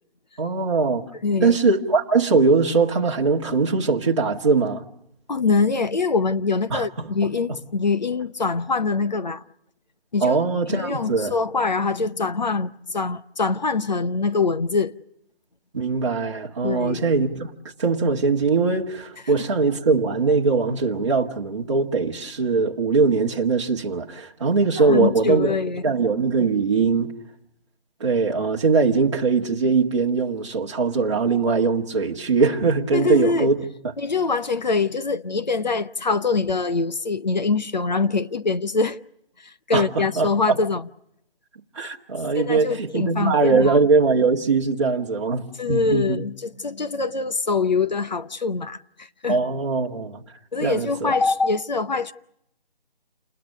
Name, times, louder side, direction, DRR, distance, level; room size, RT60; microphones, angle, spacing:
voice 1, 0.4-1.0 1.4-4.8 6.7-7.1 10.2-11.3 15.7-17.5 17.8-25.5 25.8-27.1 28.0-33.7 39.7-40.6 41.8-46.2 49.3-50.2 50.6-51.1, right 4 dB, 30° right, 1.9 m, -21 dB
voice 2, 1.2-1.6 5.3-9.4 10.1-10.4 10.7-14.9 16.6-17.0 24.8-25.9 32.9-33.5 34.0-39.0 39.4-40.9 42.4-43.8 45.6-49.4 50.5-52.1, left 4 dB, 45° left, 0.9 m, -24 dB
28.5 x 21.0 x 6.6 m
hypercardioid pair, 175°, 30 cm